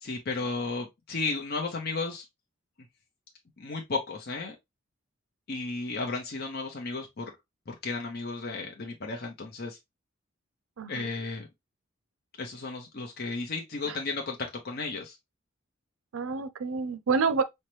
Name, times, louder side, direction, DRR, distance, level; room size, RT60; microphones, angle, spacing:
voice 1, 0.0-2.2 3.6-4.5 5.5-7.3 7.7-9.8 10.9-11.5 12.4-15.2, left 3 dB, 50° left, 0.8 m, -34 dB
voice 2, 10.8-11.1 13.9-14.0 16.1-17.4, right 5 dB, 85° right, 0.5 m, -28 dB
5.5 x 2.2 x 3.1 m
head